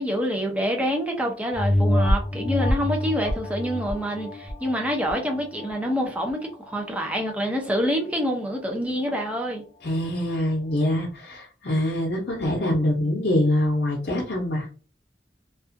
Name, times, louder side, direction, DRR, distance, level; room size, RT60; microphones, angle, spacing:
voice 1, 0.0-9.6, equal, 10° right, 0.5 m, -26 dB
sound 1, 1.5-6.5 7.0-7.1, left 1 dB, 25° left, 0.7 m, -26 dB
voice 2, 9.8-14.7, left 1 dB, 60° left, 0.7 m, -24 dB
2.5 x 2.3 x 2.5 m
head